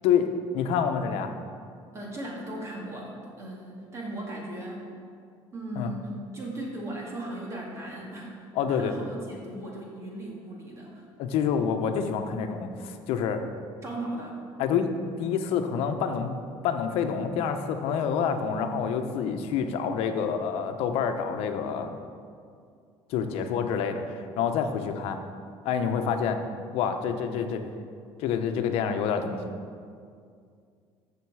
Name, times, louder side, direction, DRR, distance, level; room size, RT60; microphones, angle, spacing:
voice 1, 0.5-1.3 5.8-5.9 8.5-8.9 11.2-13.4 14.6-14.9 15.2-16.4 16.6-22.0 23.1-25.2 25.6-26.4 26.7-27.6 28.2-29.4, left 7 dB, 75° left, 6 dB, 1.0 m, -27 dB
voice 2, 1.9-4.9 5.5-8.3 8.6-11.0 13.8-14.4, right 1 dB, 30° right, -2 dB, 2.2 m, -37 dB
14.0 x 6.8 x 4.8 m, 2.3 s
cardioid pair, 150°, 10 cm